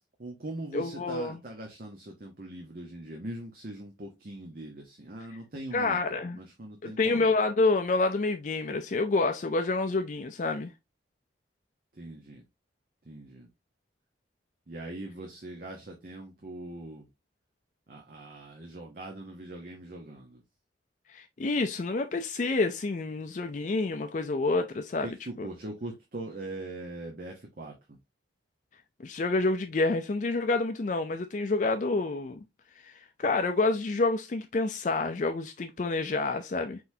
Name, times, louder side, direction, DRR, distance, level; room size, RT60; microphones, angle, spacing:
voice 1, 0.2-7.3 11.9-12.5 13.0-13.5 14.7-17.1 17.9-20.4 25.0-28.0, right 1 dB, 50° right, 0.9 m, -41 dB
voice 2, 0.7-1.4 5.7-6.4 6.8-10.7 21.1-25.1 25.4-25.5 29.0-32.4 32.8-32.9 33.2-36.8, left 3 dB, 40° left, 0.4 m, -28 dB
4.7 x 3.9 x 2.7 m
head